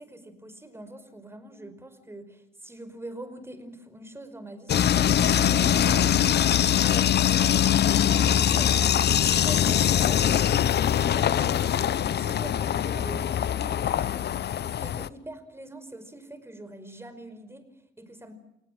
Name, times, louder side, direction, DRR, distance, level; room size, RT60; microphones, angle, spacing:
voice 1, 0.0-7.6 8.1-18.3, right 1 dB, 10° right, 11 dB, 5.0 m, -44 dB
sound 1, 4.7-15.1, left 9 dB, 55° left, 1.0 m, -22 dB
28.5 x 19.0 x 7.4 m, 0.85 s
cardioid pair, 90°, 20 cm